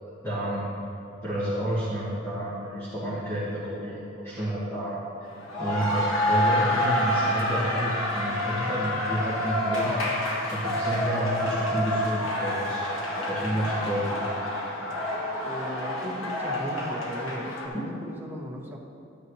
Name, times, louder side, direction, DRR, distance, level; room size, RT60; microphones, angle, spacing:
voice 1, 0.2-0.7 1.2-5.3 5.6-9.9 10.5-14.2 17.7-17.8, equal, 15° left, -10 dB, 1.8 m, -30 dB
sound 1, 5.3-17.7, left 1 dB, 85° left, 1.6 m, -28 dB
voice 2, 15.4-18.8, equal, 10° right, -2 dB, 0.9 m, -37 dB
12.0 x 9.5 x 3.2 m, 2.6 s
head